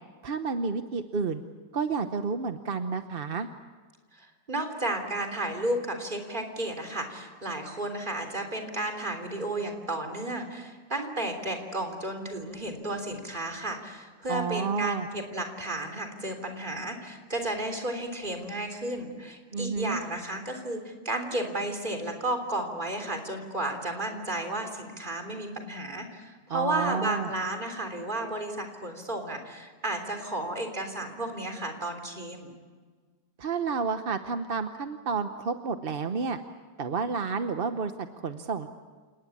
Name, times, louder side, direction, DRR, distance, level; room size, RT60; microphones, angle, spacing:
voice 1, 0.2-1.4 1.7-3.5 14.3-15.1 19.5-20.0 26.5-27.3 33.4-36.4 36.8-38.7, right 5 dB, 45° right, 8 dB, 0.8 m, -30 dB
voice 2, 4.2-32.5, right 1 dB, 25° right, 4 dB, 3.7 m, -33 dB
28.5 x 19.5 x 8.5 m, 1.5 s
omnidirectional pair, 2.0 m